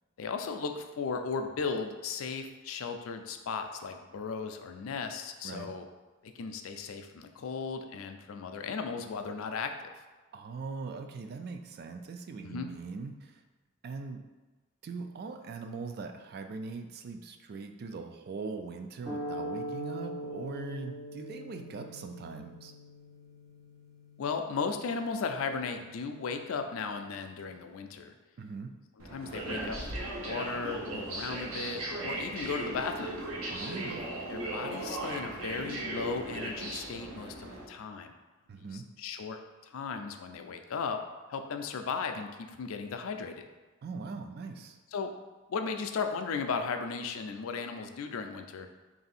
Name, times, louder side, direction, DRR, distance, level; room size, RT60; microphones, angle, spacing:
voice 1, 0.2-5.9 6.2-9.9 12.4-12.7 24.2-28.1 29.1-33.2 34.3-38.1 38.6-41.0 41.3-43.4 44.9-45.1 45.5-48.7, left 5 dB, 70° left, 6 dB, 0.4 m, -36 dB
voice 2, 10.3-13.4 13.8-14.2 14.8-22.7 28.4-28.7 33.5-34.1 38.5-38.9 43.8-44.8, right 4 dB, 50° right, 5 dB, 0.3 m, -41 dB
sound 1, 19.1-27.4, equal, 15° right, 0.9 m, -43 dB
sound 2, 29.0-37.7, right 1 dB, 85° right, 0.8 m, -37 dB
3.3 x 2.7 x 4.1 m, 1.2 s
head